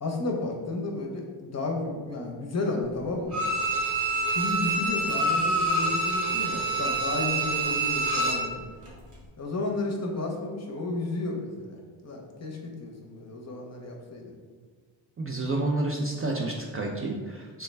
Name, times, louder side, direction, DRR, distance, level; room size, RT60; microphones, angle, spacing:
voice 1, 0.0-3.5 4.3-8.7 9.4-14.4, left 2 dB, 35° left, 0 dB, 0.7 m, -32 dB
Bowed string instrument, 3.3-8.5 8.9-9.0, right 2 dB, 80° right, 1.3 m, -26 dB
voice 2, 15.2-17.6, right 2 dB, 30° right, -1 dB, 0.3 m, -30 dB
3.3 x 2.2 x 3.2 m, 1.5 s
supercardioid pair, 55°, 49 cm